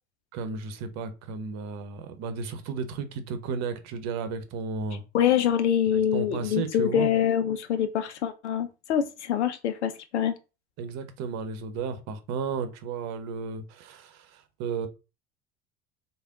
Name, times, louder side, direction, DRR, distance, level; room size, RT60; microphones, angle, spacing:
voice 1, 0.3-5.0 5.9-7.2 10.8-14.9, right 5 dB, 55° right, 0.8 m, -34 dB
voice 2, 5.1-10.3, left 9 dB, 85° left, 0.5 m, -25 dB
3.4 x 2.2 x 3.7 m
hypercardioid pair, 75°, 33 cm